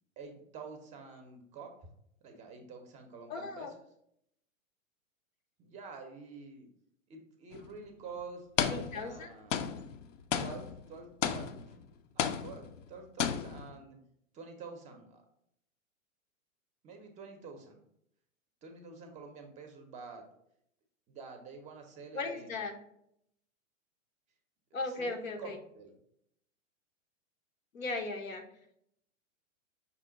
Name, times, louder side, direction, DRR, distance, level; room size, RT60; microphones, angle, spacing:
voice 1, 0.2-1.7 2.2-3.7 5.6-6.7 7.1-9.9 10.3-11.6 12.1-14.0 14.3-15.2 16.8-17.8 18.6-20.2 21.1-22.6 24.7-26.0, right 4 dB, 20° right, 4 dB, 0.5 m, -48 dB
voice 2, 3.3-3.7 8.7-9.3 22.1-22.8 24.7-25.6 27.7-28.4, left 3 dB, 90° left, 4 dB, 0.9 m, -37 dB
sound 1, 7.5-7.7 8.6-9.2 9.5-11.8 12.2-12.9 13.2-13.8, left 8 dB, 65° left, 0.5 m, -34 dB
5.6 x 2.2 x 3.7 m, 0.73 s
hypercardioid pair, 120°, 40 cm